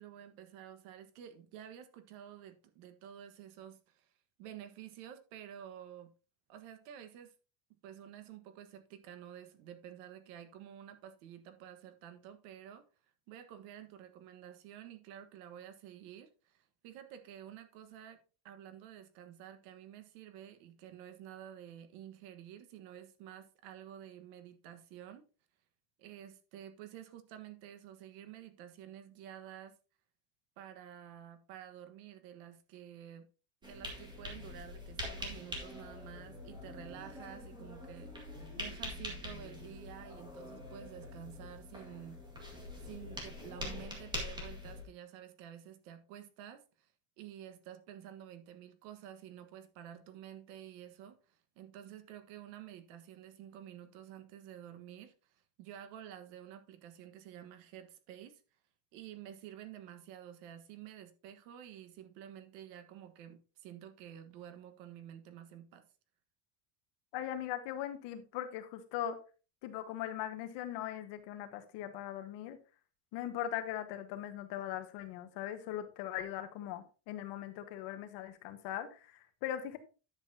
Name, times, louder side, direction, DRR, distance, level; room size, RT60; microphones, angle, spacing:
voice 1, 0.0-4.1 4.4-6.1 6.5-7.3 7.8-12.8 13.3-18.2 18.4-25.3 26.0-29.8 30.6-33.3 33.6-42.2 42.8-46.9 47.2-58.4 58.9-65.9, right 10 dB, 75° right, 1.5 m, -51 dB
sound 1, 33.6-44.8, left 1 dB, 10° right, 1.9 m, -44 dB
voice 2, 67.1-69.2 69.6-72.6 73.1-79.8, left 11 dB, 60° left, 1.4 m, -40 dB
10.5 x 7.5 x 2.8 m
cardioid pair, 175°, 48 cm